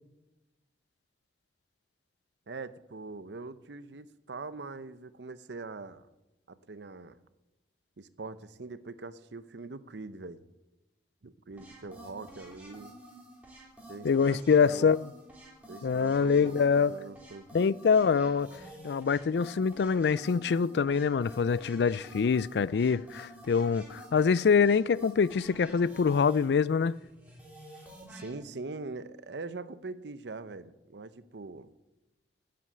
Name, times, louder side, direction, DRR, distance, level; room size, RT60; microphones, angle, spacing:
voice 1, 2.5-6.1 6.5-7.2 8.0-10.4 11.2-12.9 13.9-14.9 15.7-17.5 28.1-31.7, right 3 dB, 80° right, 0.7 m, -43 dB
sound 1, 11.6-28.3, right 1 dB, 10° right, 3.3 m, -50 dB
voice 2, 14.0-15.1 15.8-16.9 17.5-27.0, left 6 dB, 70° left, 0.4 m, -25 dB
11.0 x 7.8 x 8.5 m
head